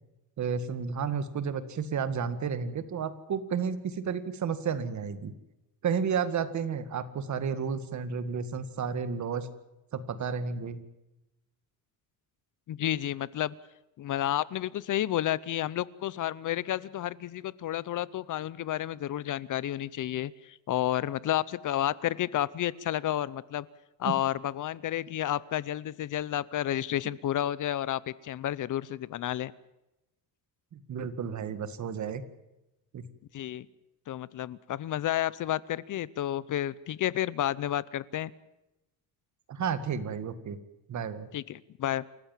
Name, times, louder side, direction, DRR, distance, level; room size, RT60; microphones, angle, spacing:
voice 1, 0.4-5.3 5.8-9.5 9.9-10.8 24.0-24.1 30.7-32.2 32.9-33.0 39.5-40.6 40.9-41.3, right 6 dB, 50° right, 12 dB, 2.1 m, -32 dB
voice 2, 12.7-13.5 14.0-23.7 24.0-29.5 33.3-33.7 34.1-38.3 41.3-42.0, left 12 dB, 55° left, 20 dB, 0.8 m, -31 dB
28.5 x 15.0 x 7.4 m, 0.94 s
cardioid pair, 145°, 38 cm